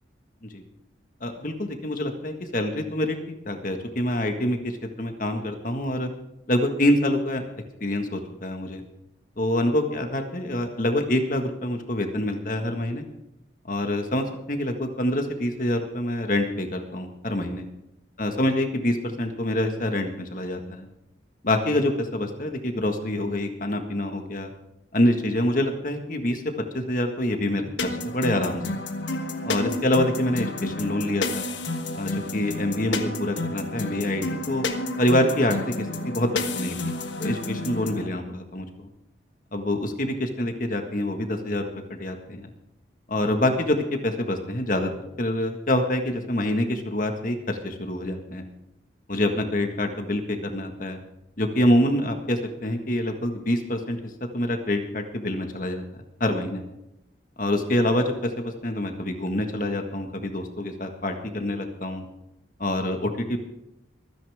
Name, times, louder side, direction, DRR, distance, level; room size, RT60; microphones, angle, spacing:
voice 1, 1.2-3.2 3.4-6.1 6.5-7.4 7.8-8.8 9.4-13.0 13.6-17.6 18.2-20.9 21.4-24.5 24.9-26.4 26.7-28.6 29.4-31.4 31.9-34.6 35.0-36.9 37.2-38.9 39.5-42.5 43.1-48.5 49.1-51.0 51.4-54.0 54.3-55.8 56.2-56.6 57.4-62.0 62.6-63.4, left 1 dB, 45° left, 5 dB, 1.7 m, -26 dB
sound 1, 27.8-38.1, left 2 dB, 75° left, 1.4 m, -30 dB
24.0 x 10.0 x 3.6 m, 0.88 s
head